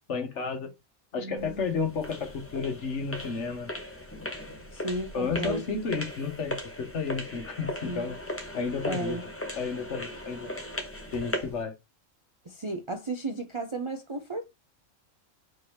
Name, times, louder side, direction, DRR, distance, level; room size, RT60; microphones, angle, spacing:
voice 1, 0.1-0.7 1.1-3.7 5.1-8.2 8.5-9.2 9.6-10.5 11.1-11.7, left 5 dB, 55° left, 1.3 m, -32 dB
sound 1, 1.4-11.6, left 1 dB, 10° left, 0.7 m, -38 dB
voice 2, 4.7-5.7 7.8-8.1 8.8-9.2 12.4-14.5, right 2 dB, 45° right, 0.4 m, -34 dB
4.4 x 2.8 x 3.4 m
omnidirectional pair, 1.5 m